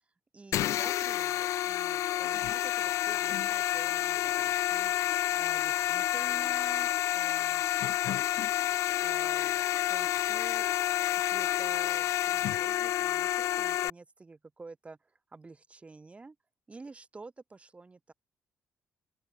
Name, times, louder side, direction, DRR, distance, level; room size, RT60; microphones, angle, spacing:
voice 1, 0.3-4.9 5.3-7.6 9.0-9.6 9.9-10.6 11.1-16.4 16.7-18.1, right 3 dB, 25° right, 7.1 m, -49 dB
sound 1, 0.5-13.9, left 13 dB, 75° left, 0.3 m, -29 dB
open air
cardioid pair, 105°, 5 cm